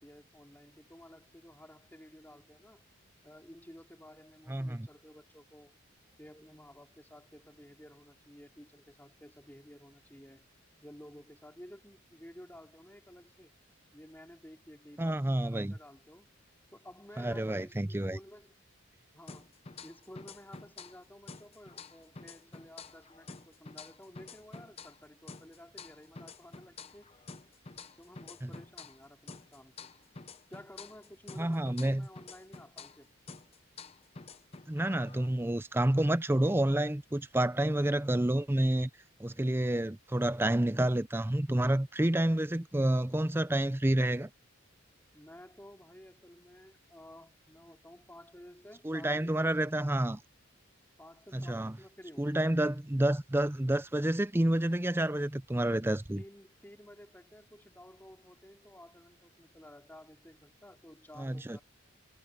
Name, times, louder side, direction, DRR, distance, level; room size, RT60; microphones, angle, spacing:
voice 1, 0.0-2.9 3.2-5.7 6.2-10.5 10.8-13.5 13.9-16.3 16.7-18.6 19.1-27.2 28.0-29.9 30.5-33.1 45.1-49.9 51.0-52.3 56.2-61.6, left 1 dB, 10° left, 2.8 m, -53 dB
voice 2, 4.5-4.9 15.0-15.7 17.2-18.2 28.4-28.5 31.4-32.1 34.7-38.9 39.2-44.3 48.8-50.2 51.3-51.8 52.2-56.2 61.2-61.6, right 1 dB, 10° right, 0.5 m, -29 dB
sound 1, 19.3-21.0 21.3-25.0 25.3-29.0 29.3-33.0 33.3-35.3, left 4 dB, 30° left, 0.7 m, -49 dB
head